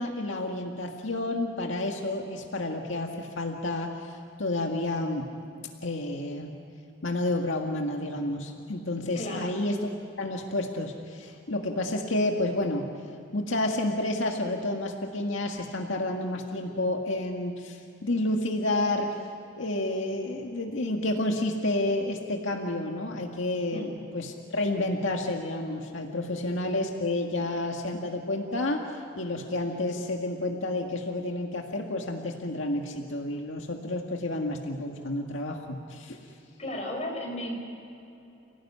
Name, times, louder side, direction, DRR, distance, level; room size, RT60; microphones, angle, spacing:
voice 1, 0.0-5.3 5.8-6.5 7.0-9.8 10.2-12.9 13.3-19.2 19.6-23.9 24.1-36.2, left 1 dB, 85° left, 2 dB, 1.9 m, -30 dB
voice 2, 9.2-9.5 23.7-24.0 36.6-37.6, left 1 dB, 35° left, 0 dB, 5.8 m, -34 dB
29.5 x 17.5 x 9.9 m, 2.7 s
head